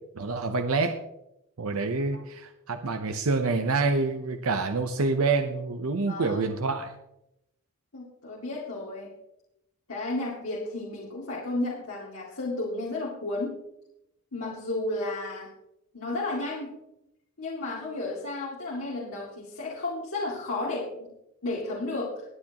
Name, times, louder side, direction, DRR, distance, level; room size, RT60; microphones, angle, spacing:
voice 1, 0.2-1.0 1.6-7.0, right 3 dB, 85° right, 7 dB, 0.8 m, -27 dB
voice 2, 6.1-6.4 7.9-9.1 9.9-13.6 14.3-15.5 15.9-16.7 17.4-21.1 21.4-22.2, left 2 dB, 90° left, -5 dB, 2.4 m, -33 dB
20.5 x 8.6 x 2.9 m, 0.87 s
head